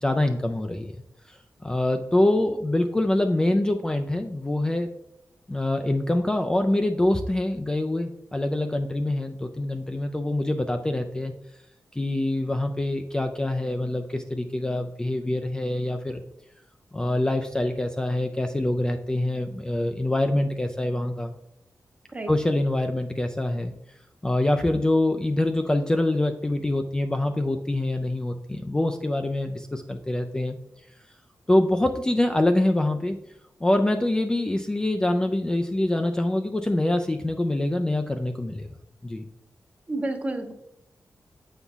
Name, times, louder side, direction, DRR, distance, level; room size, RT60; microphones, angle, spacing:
voice 1, 0.0-4.9 5.5-11.3 11.9-16.2 16.9-21.3 22.3-23.7 24.2-30.6 31.5-33.2 33.6-38.7 39.0-39.2, left 1 dB, 15° left, 5 dB, 0.3 m, -25 dB
voice 2, 39.9-40.5, right 2 dB, 25° right, 6 dB, 0.7 m, -30 dB
7.9 x 5.4 x 2.4 m, 0.84 s
wide cardioid pair, 110°, 6 cm